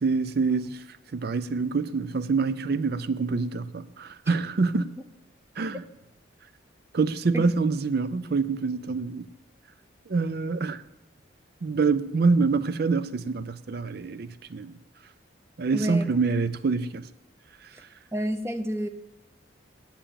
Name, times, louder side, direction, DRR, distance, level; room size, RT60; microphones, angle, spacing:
voice 1, 0.0-0.8 1.1-4.9 5.6-5.8 6.9-9.3 10.1-10.8 11.6-14.7 15.6-17.1, right 4 dB, 55° right, 0.5 m, -26 dB
voice 2, 15.7-16.1 17.7-17.8 18.1-18.9, equal, 15° right, 0.7 m, -29 dB
8.8 x 7.2 x 8.7 m
head